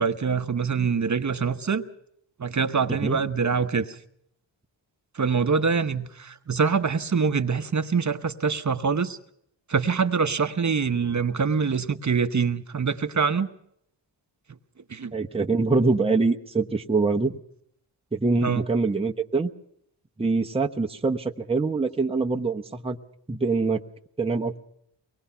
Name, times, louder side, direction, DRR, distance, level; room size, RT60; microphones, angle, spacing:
voice 1, 0.0-1.8 2.4-4.0 5.1-9.2 9.7-13.5 14.9-15.1 18.4-18.6, right 5 dB, 40° right, 9 dB, 1.0 m, -24 dB
voice 2, 15.1-17.4 18.1-19.5 20.2-23.0 23.3-23.8 24.2-24.6, right 3 dB, 10° right, 3 dB, 0.9 m, -24 dB
23.5 x 19.5 x 5.7 m, 0.73 s
wide cardioid pair, 95°, 46 cm